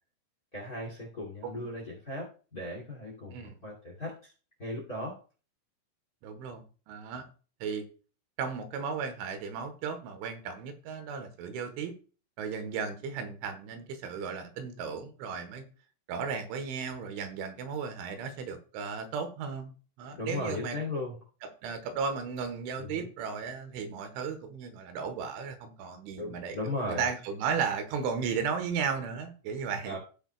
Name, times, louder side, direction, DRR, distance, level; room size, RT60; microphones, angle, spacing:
voice 1, 0.5-4.3 4.6-5.2 20.2-21.1 22.8-23.1 26.2-27.0 29.8-30.0, left 1 dB, 30° left, 1.6 m, -37 dB
voice 2, 3.3-3.6 6.2-7.2 7.6-7.8 8.4-11.9 12.4-15.7 16.1-19.7 20.0-20.8 21.4-26.6 26.9-30.0, right 6 dB, 80° right, 3.4 m, -35 dB
17.0 x 6.5 x 2.3 m
omnidirectional pair, 5.7 m